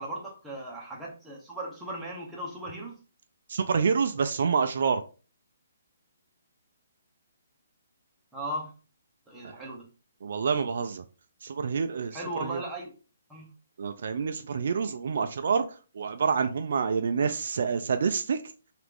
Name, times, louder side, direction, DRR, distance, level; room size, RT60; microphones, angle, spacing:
voice 1, 0.0-3.0 8.3-8.7 9.3-9.9 12.1-12.9 13.3-13.5, right 1 dB, 5° right, 0.8 m, -37 dB
voice 2, 3.5-5.0 9.4-9.5 10.2-11.0 11.4-12.6 13.8-15.7 15.9-18.4, right 5 dB, 60° right, 0.3 m, -27 dB
2.9 x 2.4 x 3.4 m
hypercardioid pair, 160°, 0 cm